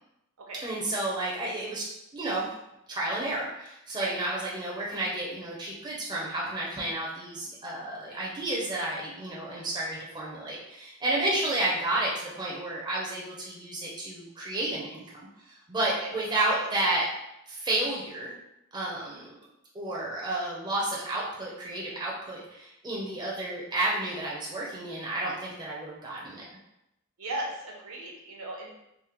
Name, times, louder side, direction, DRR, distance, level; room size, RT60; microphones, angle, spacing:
voice 1, 0.6-1.9 2.1-2.5 2.9-15.0 15.5-17.1 17.5-18.3 18.7-19.4 19.7-26.4, right 1 dB, 20° right, -5 dB, 0.5 m, -31 dB
voice 2, 27.2-28.8, right 2 dB, 90° right, -2 dB, 0.8 m, -36 dB
3.4 x 2.0 x 2.9 m, 0.85 s
head